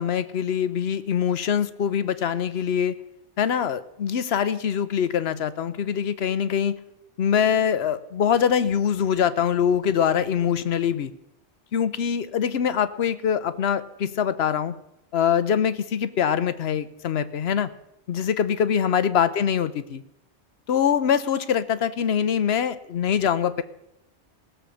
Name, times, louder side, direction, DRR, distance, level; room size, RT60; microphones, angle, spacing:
voice 1, 0.0-2.9 3.4-6.8 7.2-11.1 11.7-14.7 15.1-17.7 18.1-20.0 20.7-23.6, left 8 dB, 65° left, 14 dB, 0.9 m, -23 dB
16.5 x 7.0 x 6.3 m, 0.84 s
omnidirectional pair, 1.2 m